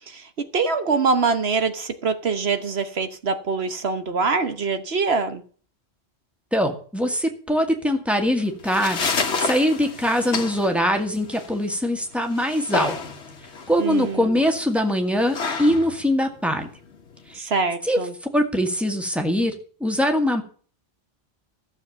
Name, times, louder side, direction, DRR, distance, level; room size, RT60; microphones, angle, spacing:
voice 1, 0.1-5.4 13.8-14.4 17.3-18.1, right 4 dB, 70° right, 9 dB, 1.3 m, -24 dB
voice 2, 6.5-9.0 9.4-13.0 13.7-16.7 17.3-17.5 17.9-18.0 18.3-19.5 19.8-20.4, equal, ahead, 4 dB, 2.0 m, -22 dB
sound 1, 8.4-17.4, left 5 dB, 80° left, 1.5 m, -31 dB
14.5 x 7.3 x 6.9 m, 0.43 s
omnidirectional pair, 1.1 m